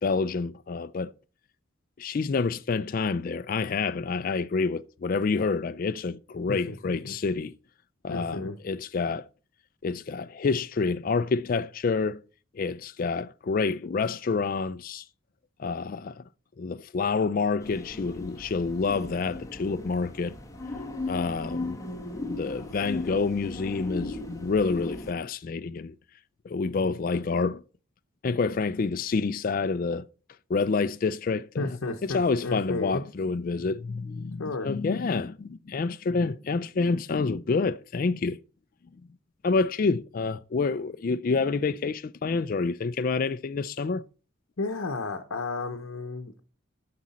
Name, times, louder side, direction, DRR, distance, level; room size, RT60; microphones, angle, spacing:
voice 1, 0.0-1.1 2.0-7.5 8.0-9.2 9.8-12.2 12.5-15.0 15.6-16.2 16.6-20.4 21.1-21.8 22.2-25.9 26.4-27.6 28.2-30.1 30.5-31.8 32.0-38.4 39.4-44.0, left 4 dB, 45° left, 0.3 m, -28 dB
voice 2, 6.5-7.1 8.1-8.6 31.6-33.0 34.4-34.7 44.6-46.4, left 3 dB, 75° left, 0.8 m, -33 dB
sound 1, 17.6-25.1, left 2 dB, 15° left, 1.3 m, -37 dB
9.5 x 6.2 x 4.2 m
head